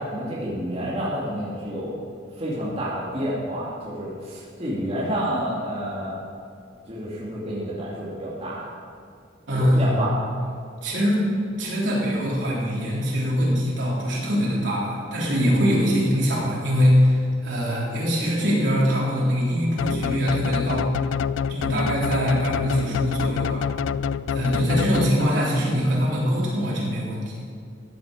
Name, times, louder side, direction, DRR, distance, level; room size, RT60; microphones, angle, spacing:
voice 1, 0.0-1.9 2.4-6.2 6.9-8.6 9.5-10.1 21.5-21.9 24.4-24.8, equal, 30° right, -7 dB, 2.4 m, -29 dB
voice 2, 9.5-10.1 10.8-11.3 11.6-20.9 21.5-23.7 24.3-27.4, equal, 70° right, -6 dB, 3.7 m, -23 dB
sound 1, 19.8-25.5, left 6 dB, 80° left, 0.3 m, -26 dB
14.5 x 9.0 x 5.1 m, 2.3 s
head